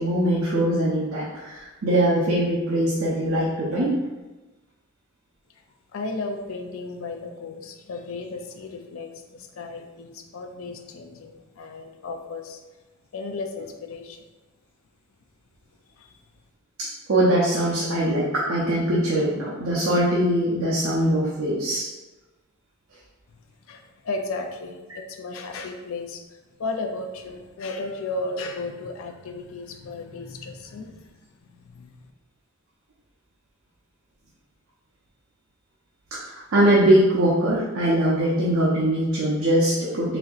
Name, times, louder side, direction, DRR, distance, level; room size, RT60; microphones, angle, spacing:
voice 1, 0.0-3.9 16.8-21.9 36.1-40.2, right 1 dB, 70° right, -7 dB, 0.7 m, -22 dB
voice 2, 5.9-12.6 13.1-14.2 16.0-16.1 23.7-26.2 26.6-31.3 31.6-31.9, left 3 dB, 70° left, 5 dB, 0.4 m, -34 dB
4.2 x 2.7 x 2.4 m, 1.1 s
head